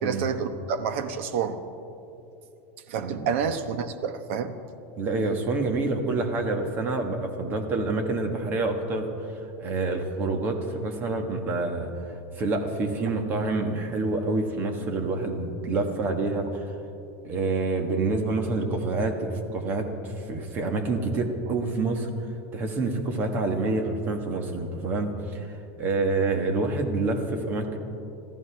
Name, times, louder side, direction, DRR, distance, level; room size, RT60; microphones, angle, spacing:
voice 1, 0.0-1.6 2.9-4.5, right 6 dB, 65° right, 10 dB, 1.0 m, -28 dB
voice 2, 5.0-9.1 9.6-16.7 17.2-22.1 22.5-27.8, right 3 dB, 25° right, 5 dB, 1.4 m, -27 dB
26.0 x 14.5 x 3.4 m, 2.8 s
supercardioid pair, 175°, 7 cm